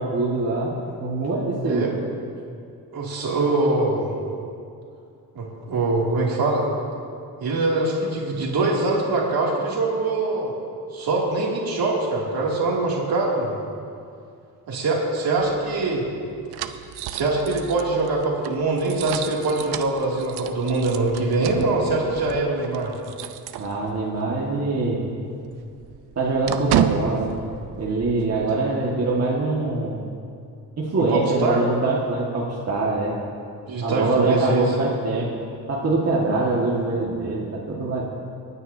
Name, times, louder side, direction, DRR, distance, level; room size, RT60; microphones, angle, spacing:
voice 1, 0.0-1.9 23.6-25.0 26.2-27.3 27.8-30.0 30.8-33.2 33.8-35.3 35.7-38.0, right 3 dB, 40° right, -4 dB, 1.7 m, -24 dB
voice 2, 2.9-4.1 5.3-6.7 7.4-10.5 10.9-13.6 14.7-16.0 17.1-22.9 31.1-31.6 33.7-34.7, right 2 dB, 65° right, -3 dB, 2.6 m, -23 dB
sound 1, 15.4-24.2 24.5-24.7 25.0-28.5, right 11 dB, 85° right, 0.6 m, -32 dB
26.5 x 9.8 x 2.7 m, 2.4 s
cardioid pair, 105°, 39 cm